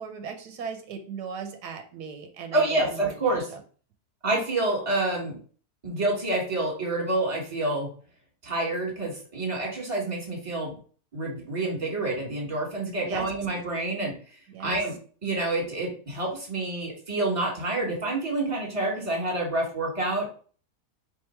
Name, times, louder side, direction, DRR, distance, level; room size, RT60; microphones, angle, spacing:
voice 1, 0.0-3.4 13.0-13.3 14.5-14.8, right 6 dB, 90° right, 5 dB, 1.3 m, -38 dB
voice 2, 2.5-3.4 4.2-5.3 5.8-7.9 8.4-10.7 11.1-14.1 14.6-14.9 15.2-20.3, right 2 dB, 20° right, -1 dB, 1.5 m, -28 dB
3.7 x 2.9 x 4.3 m, 0.42 s
omnidirectional pair, 1.7 m